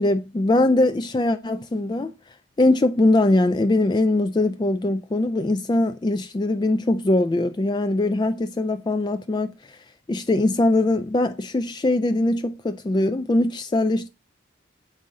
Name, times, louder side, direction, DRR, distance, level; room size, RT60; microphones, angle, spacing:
voice 1, 0.0-2.1 2.6-9.8 10.1-14.1, left 2 dB, 25° left, 0.3 m, -21 dB
7.5 x 5.4 x 3.6 m
head